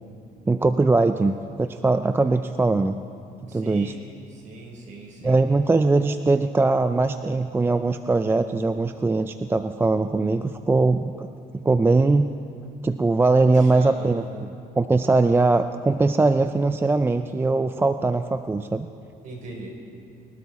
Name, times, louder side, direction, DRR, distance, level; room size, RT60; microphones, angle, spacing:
voice 1, 0.5-3.0 3.5-3.9 5.2-11.3 11.5-12.3 12.8-14.2 14.8-18.9, right 3 dB, 15° right, 9 dB, 0.4 m, -21 dB
voice 2, 3.5-4.0 4.3-5.4 13.5-14.3 19.2-19.7, right 3 dB, 45° right, 0 dB, 4.3 m, -40 dB
24.0 x 12.5 x 4.2 m, 2.5 s
cardioid pair, 110°, 17 cm